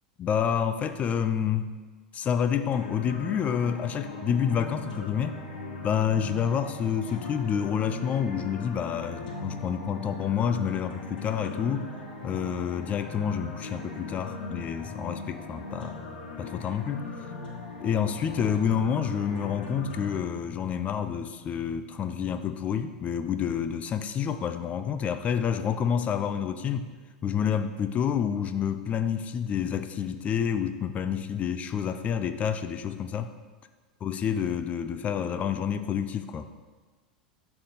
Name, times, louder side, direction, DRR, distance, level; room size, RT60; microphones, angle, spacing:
voice 1, 0.2-1.8 2.1-5.4 5.8-11.9 12.2-16.0 16.4-17.0 17.8-26.9 27.2-33.3 34.0-36.5, left 8 dB, 30° left, 10 dB, 0.4 m, -28 dB
sound 1, 2.7-20.2, left 3 dB, 80° left, 0.9 m, -39 dB
5.5 x 4.8 x 4.0 m, 1.4 s
hypercardioid pair, 85°, 4 cm